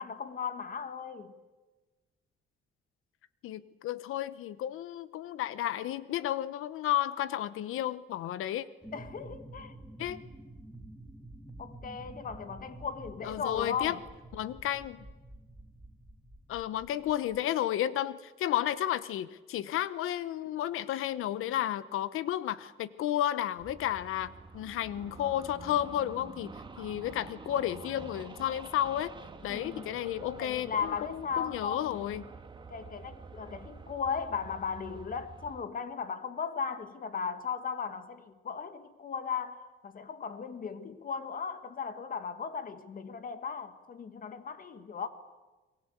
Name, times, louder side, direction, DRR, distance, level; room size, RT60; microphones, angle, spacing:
voice 1, 0.0-1.3 8.9-9.8 11.6-14.0 29.5-30.0 30.4-32.0 32.7-45.1, left 6 dB, 40° left, 2.0 m, -37 dB
voice 2, 3.4-8.6 10.0-10.2 13.2-13.9 14.3-15.0 16.5-29.1 29.4-32.2, left 12 dB, 85° left, 1.1 m, -32 dB
sound 1, 8.8-17.4, right 1 dB, 5° right, 2.6 m, -49 dB
sound 2, 23.6-35.6, right 4 dB, 20° right, 2.0 m, -48 dB
29.5 x 22.0 x 8.3 m
cardioid pair, 135°, 21 cm